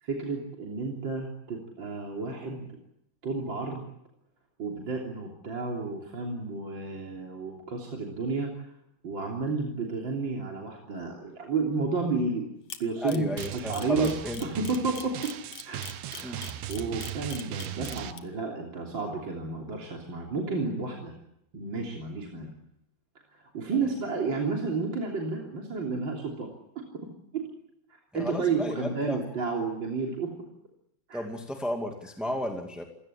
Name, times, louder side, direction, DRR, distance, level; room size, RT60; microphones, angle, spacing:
voice 1, 0.0-2.7 3.2-3.9 4.6-8.7 9.0-14.1 14.4-15.4 15.7-15.9 16.1-21.1 21.5-22.5 23.3-26.5 27.0-27.5 28.1-30.3 31.1-31.2, right 4 dB, 30° right, 0 dB, 3.5 m, -31 dB
Camera, 12.7-18.2, left 9 dB, 60° left, 1.6 m, -41 dB
voice 2, 13.0-14.4 16.2-16.4 28.1-29.2 31.1-32.8, equal, ahead, 3 dB, 1.0 m, -33 dB
Drum, 13.4-18.1, right 11 dB, 85° right, 3.1 m, -38 dB
27.5 x 17.0 x 8.9 m, 0.78 s
omnidirectional pair, 4.5 m